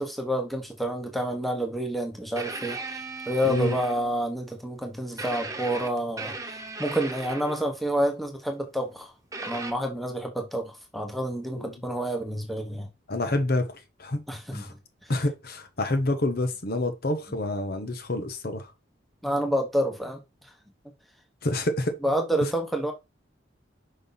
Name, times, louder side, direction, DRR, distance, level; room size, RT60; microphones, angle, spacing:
voice 1, 0.0-2.8 3.2-6.4 6.8-9.1 9.4-12.9 14.3-15.1 19.2-20.2 22.0-22.9, right 1 dB, ahead, 1.1 m, -28 dB
sound 1, 2.4-4.3 5.2-7.8 9.3-9.7, right 3 dB, 15° right, 0.9 m, -37 dB
voice 2, 3.4-3.8 11.6-11.7 13.1-14.2 14.5-14.7 15.1-18.7 21.4-22.0 22.4-22.5, left 2 dB, 50° left, 0.9 m, -28 dB
5.5 x 5.3 x 4.0 m
head